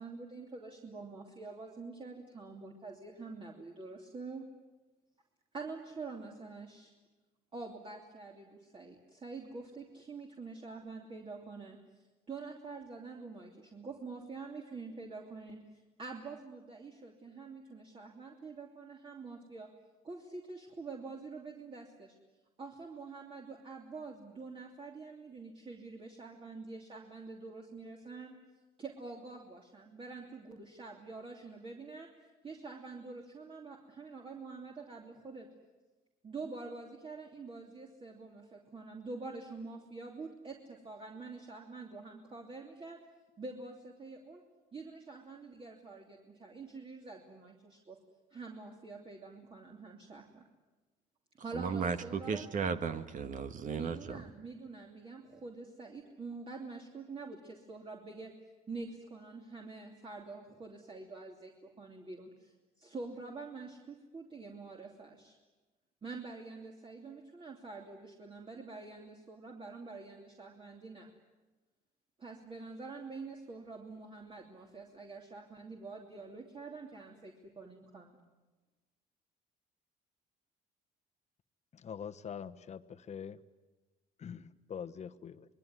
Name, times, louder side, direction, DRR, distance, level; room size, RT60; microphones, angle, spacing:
voice 1, 0.0-4.5 5.5-6.9 7.5-11.8 12.3-15.6 16.0-19.7 20.0-22.1 22.6-28.3 28.8-32.1 32.4-35.5 36.2-43.0 43.4-44.4 44.7-48.0 48.3-50.4 51.4-52.5 53.7-58.3 58.7-65.4 66.0-71.1 72.2-78.2, right 3 dB, 30° right, 0 dB, 3.0 m, -46 dB
voice 2, 51.5-54.2, right 6 dB, 50° right, 9 dB, 1.7 m, -35 dB
voice 3, 81.8-83.4 84.2-85.5, left 7 dB, 40° left, 9 dB, 1.2 m, -44 dB
26.0 x 21.5 x 9.9 m, 1.2 s
cardioid pair, 110°, 17 cm